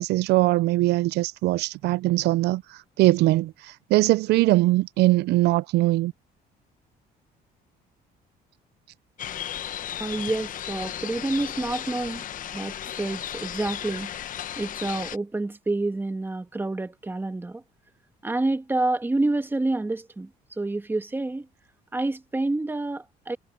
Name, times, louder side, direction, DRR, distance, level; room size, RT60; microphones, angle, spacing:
voice 1, 0.0-6.1, right 18 dB, 75° right, 0.4 m, -21 dB
sound 1, 9.2-15.2, left 10 dB, 50° left, 0.9 m, -35 dB
voice 2, 10.0-12.2 12.5-14.1 14.6-17.6 18.2-20.3 20.6-21.5 21.9-23.4, right 2 dB, 10° right, 1.5 m, -28 dB
cardioid pair, 110°, 17 cm